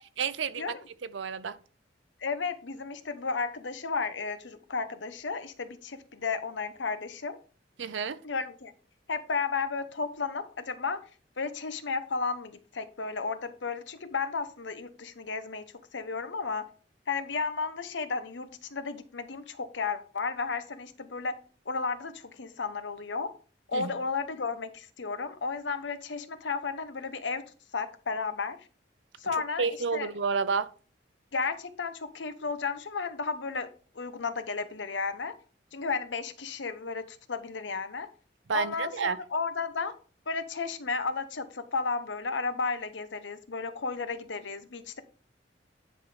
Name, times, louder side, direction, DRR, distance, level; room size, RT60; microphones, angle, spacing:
voice 1, 0.0-1.6 7.8-8.2 23.7-23.9 29.3-30.7 38.5-39.2, right 5 dB, 80° right, 0.6 m, -31 dB
voice 2, 2.2-7.4 8.2-8.7 9.1-11.0 11.4-15.6 15.9-16.6 17.1-21.3 21.7-23.3 23.7-27.4 27.7-28.6 29.2-30.1 31.3-33.7 33.9-35.3 35.7-38.1 38.5-39.9 40.3-45.0, left 4 dB, 80° left, 0.9 m, -33 dB
9.9 x 3.9 x 5.0 m
head